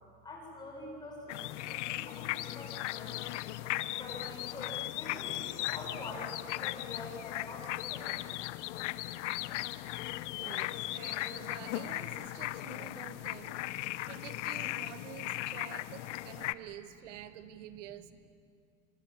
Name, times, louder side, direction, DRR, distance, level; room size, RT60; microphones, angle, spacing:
voice 1, 0.2-3.4 3.8-8.4 9.5-9.9, left 1 dB, 10° left, -2 dB, 6.8 m, -46 dB
sound 1, 1.3-16.5, left 16 dB, 75° left, 0.8 m, -37 dB
voice 2, 10.4-18.1, right 11 dB, 85° right, 11 dB, 1.4 m, -49 dB
24.5 x 23.0 x 8.8 m, 2.2 s
supercardioid pair, 165°, 36 cm